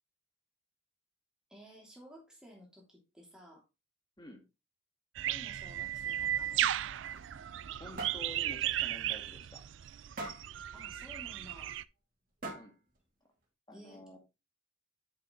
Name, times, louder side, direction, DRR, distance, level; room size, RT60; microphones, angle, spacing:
voice 1, 1.5-3.6 5.2-6.7 10.7-11.8 13.7-14.2, equal, 5° right, -2 dB, 3.0 m, -54 dB
sound 1, 5.2-11.8, right 12 dB, 70° right, 0.4 m, -35 dB
sound 2, 6.9-7.7 8.0-8.3 8.7-8.9 9.2-9.3 10.2-10.5 11.7-11.8 12.4-12.9, right 2 dB, 45° right, 2.6 m, -42 dB
voice 2, 7.8-9.6 12.5-12.7 13.7-14.2, left 1 dB, 20° left, 4 dB, 1.9 m, -50 dB
8.7 x 6.6 x 3.8 m, 0.26 s
head